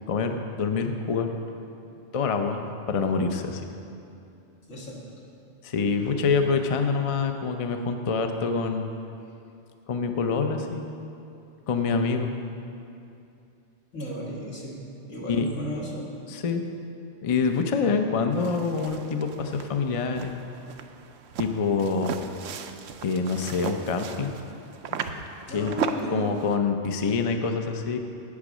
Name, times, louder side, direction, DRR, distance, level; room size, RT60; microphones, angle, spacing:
voice 1, 0.1-1.3 2.1-2.6 2.9-3.6 5.6-8.9 9.9-10.8 11.7-12.3 15.3-15.5 16.3-16.6 17.2-20.3 21.4-22.1 23.0-24.3 25.0-25.1 25.5-25.7 26.1-28.0, left 5 dB, 40° left, 5 dB, 0.5 m, -26 dB
voice 2, 4.7-5.0 13.9-16.2 25.5-26.4, equal, 85° left, -4 dB, 2.2 m, -34 dB
sound 1, 18.3-26.6, right 7 dB, 85° right, 0.9 m, -36 dB
8.6 x 8.4 x 6.2 m, 2.7 s
omnidirectional pair, 1.3 m